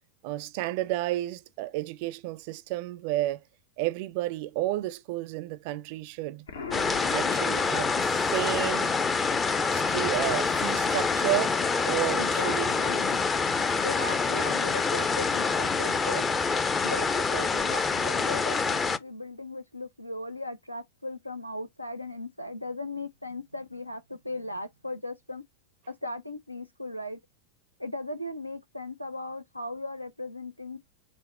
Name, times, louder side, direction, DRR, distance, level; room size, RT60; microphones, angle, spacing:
voice 1, 0.2-3.4 3.8-6.5 6.9-8.9 9.6-11.6 11.8-12.7, right 16 dB, 45° right, 0.5 m, -31 dB
Explosion, 6.5-8.3, left 5 dB, 70° left, 0.8 m, -40 dB
sound 1, 6.7-19.0, left 4 dB, 20° left, 0.5 m, -26 dB
voice 2, 12.2-13.2 13.8-16.2 16.8-25.4 25.9-27.2 27.8-30.8, left 2 dB, 90° left, 0.4 m, -37 dB
5.4 x 2.1 x 3.6 m
figure-of-eight pair, 90°, 0 cm